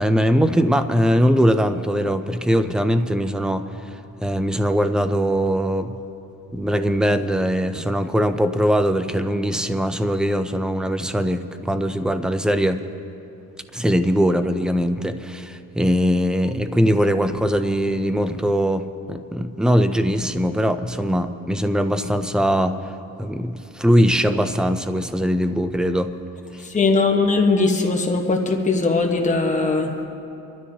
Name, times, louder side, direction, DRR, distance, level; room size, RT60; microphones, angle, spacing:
voice 1, 0.0-5.9 6.5-12.8 13.7-22.9 23.2-26.1 26.5-26.6, equal, ahead, 9 dB, 0.3 m, -21 dB
voice 2, 26.6-30.1, left 3 dB, 25° left, 2 dB, 1.2 m, -20 dB
25.5 x 12.5 x 2.8 m, 2.8 s
cardioid pair, 155°, 32 cm